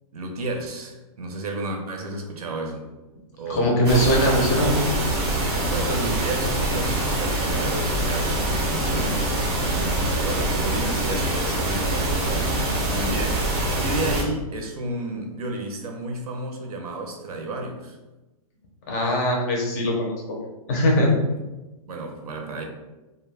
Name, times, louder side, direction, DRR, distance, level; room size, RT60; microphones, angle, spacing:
voice 1, 0.1-2.9 3.4-3.8 5.7-12.6 12.9-18.0 21.9-22.6, right 2 dB, 80° right, 3 dB, 0.7 m, -32 dB
voice 2, 3.5-4.7 18.9-21.1, equal, 25° left, -1 dB, 0.5 m, -21 dB
sound 1, 3.8-14.2, right 1 dB, 25° right, 0.5 m, -24 dB
2.2 x 2.1 x 3.2 m, 1.1 s
hypercardioid pair, 165°, 19 cm